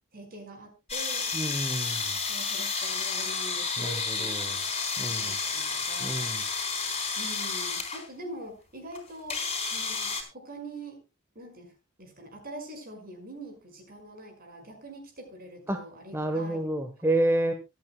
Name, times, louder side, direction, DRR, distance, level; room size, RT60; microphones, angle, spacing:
voice 1, 0.1-1.7 2.2-4.6 5.1-6.4 7.2-11.0 11.4-11.7 12.0-16.6, right 1 dB, 45° right, 4 dB, 5.3 m, -44 dB
sound 1, 0.9-8.0 8.9-9.0 9.3-10.2, left 4 dB, 30° left, 3.7 m, -31 dB
voice 2, 1.3-2.1 3.8-4.6 5.0-5.4 6.0-6.4 15.7-15.8 16.1-17.5, right 1 dB, 10° right, 6 dB, 1.1 m, -29 dB
24.5 x 9.1 x 2.3 m, 0.26 s
head